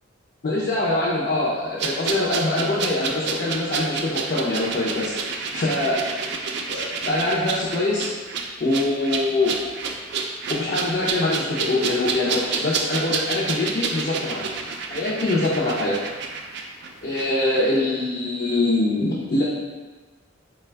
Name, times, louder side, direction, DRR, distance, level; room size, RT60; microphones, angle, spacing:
voice 1, 0.4-5.1 5.5-6.0 6.7-8.1 8.6-9.7 10.5-14.4 14.9-16.0 17.0-19.5, left 2 dB, 50° left, -8 dB, 0.6 m, -23 dB
sound 1, 1.8-17.3 17.5-17.7, right 5 dB, 60° right, 0.4 m, -29 dB
4.2 x 2.2 x 3.3 m, 1.3 s
head